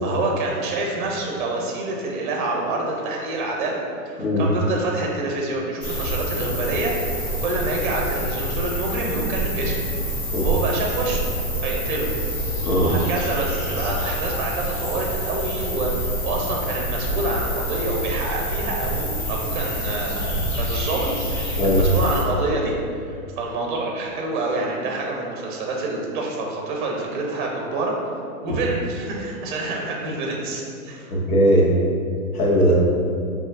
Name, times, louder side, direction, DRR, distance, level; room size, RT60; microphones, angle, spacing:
voice 1, 0.0-3.8 4.1-9.9 10.3-11.3 11.6-12.1 12.8-22.7 23.0-28.0 28.4-31.1, right 2 dB, 35° right, -1 dB, 0.7 m, -27 dB
sound 1, 5.8-22.2, equal, 35° left, 1.0 m, -27 dB
voice 2, 31.1-31.7 32.3-32.8, equal, 85° left, -3 dB, 1.1 m, -18 dB
4.9 x 2.7 x 2.5 m, 2.4 s
hypercardioid pair, 155°, 43 cm